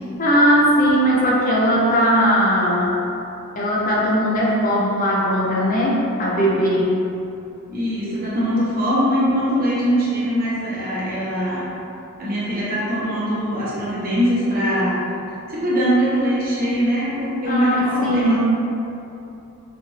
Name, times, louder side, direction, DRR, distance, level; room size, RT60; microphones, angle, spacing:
voice 1, 0.2-3.0 3.6-6.9 17.5-18.4, equal, 35° left, -5 dB, 0.5 m, -18 dB
voice 2, 7.7-11.7 12.2-15.0 15.5-18.4, equal, 40° right, -9 dB, 1.0 m, -22 dB
4.0 x 2.6 x 3.1 m, 2.8 s
head